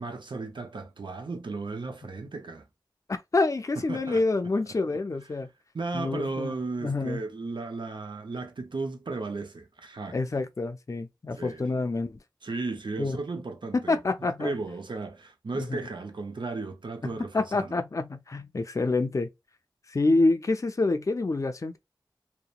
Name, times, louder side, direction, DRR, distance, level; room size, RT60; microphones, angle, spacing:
voice 1, 0.0-2.7 3.9-4.2 5.7-10.2 11.4-11.6 12.4-14.0 14.4-17.8, right 3 dB, 90° right, 0.5 m, -35 dB
voice 2, 3.1-5.5 5.9-7.2 10.1-12.2 13.0-13.2 13.7-14.5 15.5-15.8 17.0-19.3 19.9-21.8, left 3 dB, 45° left, 0.4 m, -27 dB
2.8 x 2.1 x 2.4 m
wide cardioid pair, 60°, 8 cm